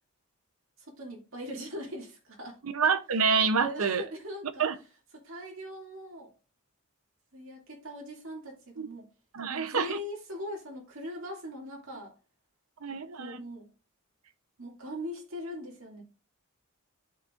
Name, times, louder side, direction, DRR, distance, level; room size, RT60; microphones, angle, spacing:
voice 1, 0.8-2.6 3.6-4.6 5.1-6.3 7.3-9.1 9.5-12.2 12.9-13.7 14.6-16.0, equal, 65° right, 2.4 m, -41 dB
voice 2, 2.6-4.0 4.6-4.8 8.8-8.9 9.3-10.0 12.8-13.4, right 5 dB, 90° right, 0.7 m, -27 dB
12.5 x 4.8 x 2.5 m
head